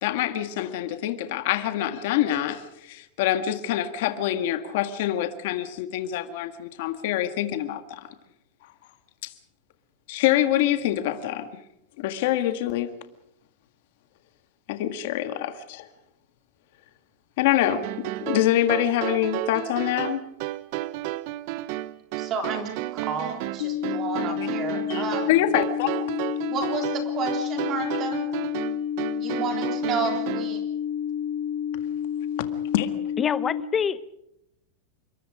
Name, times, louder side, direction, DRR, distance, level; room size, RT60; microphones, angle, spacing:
voice 1, 0.0-8.1 9.2-9.3 10.1-11.5 12.0-12.9 14.7-15.9 17.4-20.2 24.9-25.9 32.7-32.9, left 12 dB, 50° left, 1.8 m, -25 dB
sound 1, 17.7-30.6, right 15 dB, 45° right, 0.8 m, -32 dB
voice 2, 22.2-25.4 26.5-28.2 29.2-30.6, right 5 dB, 25° right, 3.6 m, -31 dB
sound 2, 23.6-33.6, left 9 dB, 70° left, 3.0 m, -30 dB
voice 3, 33.2-34.1, left 7 dB, 15° left, 0.8 m, -26 dB
26.5 x 22.5 x 5.0 m
supercardioid pair, 175°, 0 cm